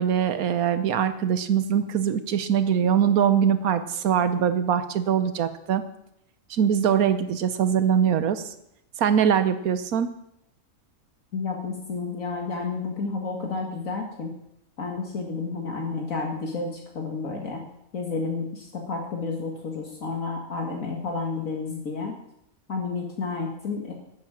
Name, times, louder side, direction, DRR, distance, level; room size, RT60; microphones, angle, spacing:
voice 1, 0.0-5.8 6.5-8.4 9.0-10.1, right 8 dB, 90° right, 11 dB, 1.4 m, -22 dB
voice 2, 11.3-14.3 14.8-17.6 17.9-22.1 22.7-23.9, left 4 dB, 70° left, 1 dB, 2.2 m, -31 dB
12.0 x 10.5 x 7.4 m, 0.78 s
omnidirectional pair, 1.5 m